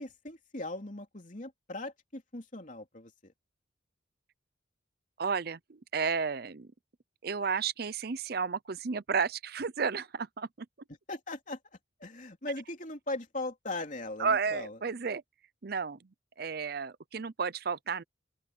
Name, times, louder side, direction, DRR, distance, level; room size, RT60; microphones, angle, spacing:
voice 1, 0.0-3.3 11.1-11.6 12.0-14.8, left 2 dB, 40° left, 3.2 m, -39 dB
voice 2, 5.2-6.7 7.2-10.5 14.2-15.2 15.6-16.0 16.4-18.0, right 5 dB, 55° right, 0.6 m, -32 dB
open air
head